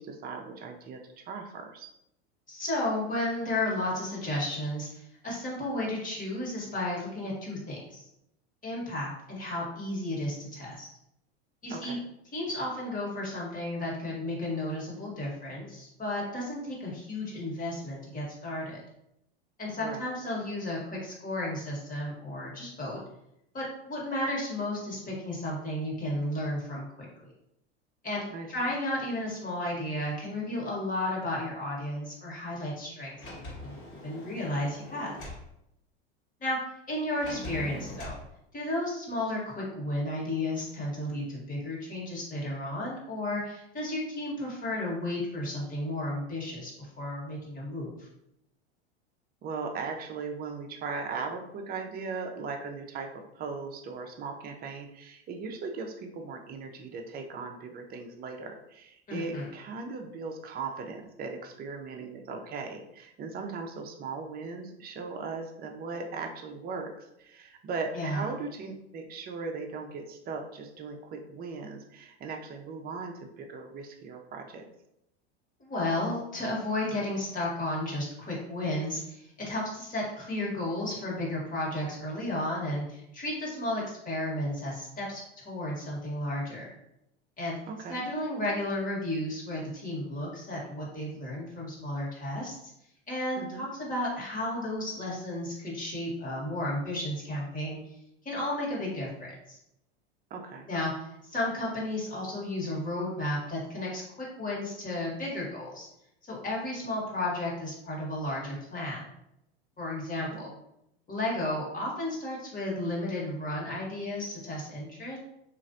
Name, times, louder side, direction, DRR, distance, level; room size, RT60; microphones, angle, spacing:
voice 1, 0.0-1.9 11.7-12.0 19.7-20.1 28.3-28.5 49.4-74.7 87.7-88.0 93.4-93.7 100.3-100.7 110.2-110.6, right 4 dB, 30° right, 3 dB, 0.5 m, -38 dB
voice 2, 2.5-8.0 8.6-10.9 11.6-12.0 12.3-18.8 19.6-23.0 23.5-27.3 28.0-28.2 28.5-33.8 34.0-35.1 36.4-36.6 36.9-38.2 38.5-48.1 59.1-59.5 67.9-68.2 75.6-86.7 87.4-87.6 87.9-92.6 93.1-97.8 98.2-99.6 100.7-105.9 106.2-109.0 109.8-110.5 111.1-115.2, left 1 dB, 25° left, -4 dB, 1.4 m, -33 dB
Sliding door, 33.2-35.5 37.2-38.2, left 1 dB, 45° left, 1.5 m, -42 dB
3.0 x 2.5 x 2.6 m, 0.80 s
hypercardioid pair, 95°, 32 cm